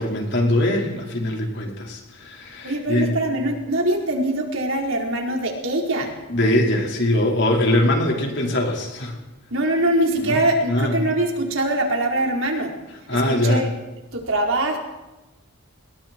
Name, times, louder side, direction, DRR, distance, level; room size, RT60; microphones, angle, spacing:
voice 1, 0.0-3.1 6.3-9.2 10.2-10.4 10.7-11.0 13.1-13.7, left 1 dB, 55° left, 0 dB, 4.9 m, -22 dB
voice 2, 2.6-6.1 9.5-12.7 13.1-13.7 14.1-14.8, right 1 dB, 65° right, 0 dB, 4.5 m, -23 dB
29.5 x 21.5 x 4.6 m, 1.0 s
head